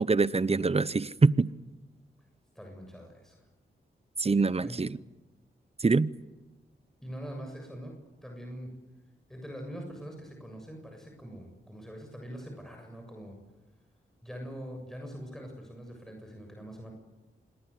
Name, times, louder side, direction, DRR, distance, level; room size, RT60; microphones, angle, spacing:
voice 1, 0.0-1.5 4.2-4.9 5.8-6.1, right 4 dB, 30° right, 0.9 m, -24 dB
voice 2, 2.6-3.4 4.5-4.8 7.0-7.9 8.2-8.7 9.3-13.4 14.2-16.9, equal, ahead, 7.1 m, -43 dB
26.0 x 20.5 x 8.4 m
cardioid pair, 55°, 20 cm